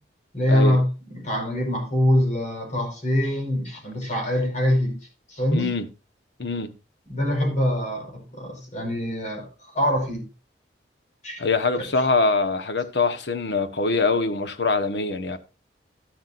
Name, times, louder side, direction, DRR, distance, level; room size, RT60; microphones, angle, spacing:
voice 1, 0.3-5.0 5.3-5.7 7.1-10.3 11.2-11.4 11.8-11.9, left 1 dB, 45° left, 5.1 m, -24 dB
voice 2, 5.5-5.8 6.4-6.7 11.4-15.4, left 3 dB, 75° left, 1.3 m, -23 dB
12.0 x 11.5 x 2.6 m
head